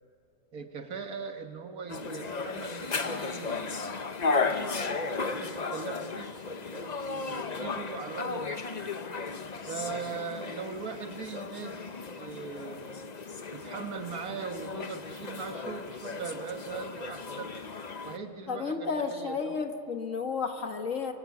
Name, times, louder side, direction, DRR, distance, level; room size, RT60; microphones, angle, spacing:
voice 1, 0.5-4.0 4.4-6.3 6.7-8.9 9.7-13.0 13.5-17.5 18.0-19.6, right 5 dB, 75° right, 6 dB, 1.9 m, -40 dB
sound 1, 1.9-18.2, left 4 dB, 35° left, 0.9 m, -35 dB
voice 2, 18.5-21.1, left 5 dB, 60° left, 5 dB, 1.8 m, -32 dB
24.5 x 24.0 x 8.5 m, 2.5 s
omnidirectional pair, 1.6 m